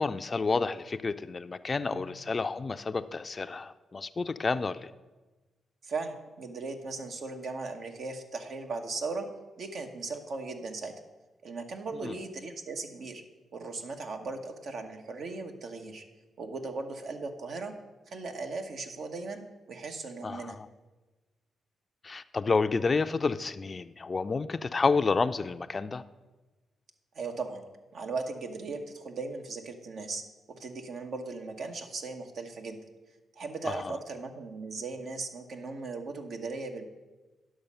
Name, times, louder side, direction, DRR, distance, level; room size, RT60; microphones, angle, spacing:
voice 1, 0.0-4.9 12.0-12.2 20.2-20.7 22.0-26.0 33.6-33.9, left 4 dB, 40° left, 10 dB, 0.4 m, -30 dB
voice 2, 5.8-9.3 9.6-10.9 11.4-13.2 13.5-16.0 16.4-17.7 18.1-20.6 27.1-27.6 27.9-30.2 30.5-32.8 33.4-36.8, right 3 dB, 65° right, 5 dB, 1.1 m, -38 dB
10.5 x 6.3 x 5.5 m, 1.2 s
supercardioid pair, 65°, 0 cm